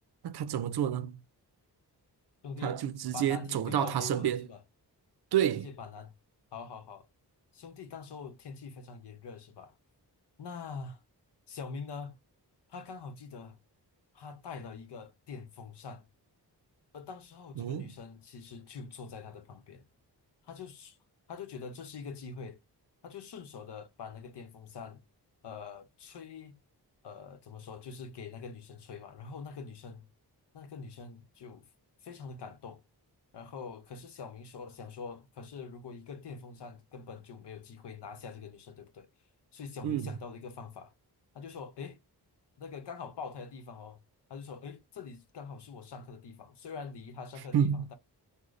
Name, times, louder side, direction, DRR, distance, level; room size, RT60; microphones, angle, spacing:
voice 1, 0.2-1.2 2.6-4.5 5.3-5.7 17.6-17.9 39.8-40.1 47.5-47.9, right 9 dB, 75° right, 0.5 m, -29 dB
voice 2, 2.4-2.8 3.1-4.6 5.6-6.1 6.5-7.1 7.5-9.7 10.4-11.0 11.5-12.2 12.7-13.6 14.1-16.1 16.9-19.9 20.4-21.0 21.3-22.6 23.0-25.0 25.4-26.6 27.0-30.1 30.5-31.7 32.0-32.8 33.3-39.1 39.5-40.9 41.3-42.0 42.6-44.0 44.3-47.9, left 5 dB, 85° left, 0.8 m, -44 dB
3.8 x 2.1 x 3.1 m
wide cardioid pair, 100°, 40 cm